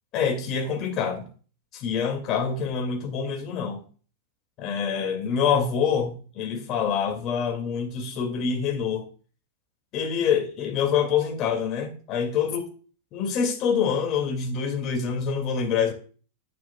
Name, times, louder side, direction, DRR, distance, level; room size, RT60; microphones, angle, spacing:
voice 1, 0.1-1.2 1.7-3.8 4.6-9.0 9.9-12.6 13.1-15.9, left 6 dB, 35° left, 2.3 m, -26 dB
11.0 x 9.6 x 2.3 m
supercardioid pair, 155°, 0 cm